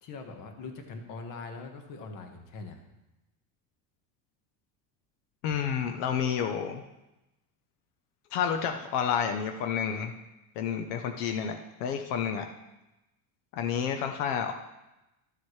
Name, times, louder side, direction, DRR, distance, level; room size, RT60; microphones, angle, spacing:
voice 1, 0.0-2.8, left 4 dB, 45° left, 5 dB, 1.3 m, -42 dB
voice 2, 5.4-6.8 8.3-10.1 10.6-12.4 13.5-14.5, left 7 dB, 85° left, 5 dB, 0.9 m, -30 dB
12.5 x 7.4 x 3.2 m, 0.97 s
cardioid pair, 160°, 45 cm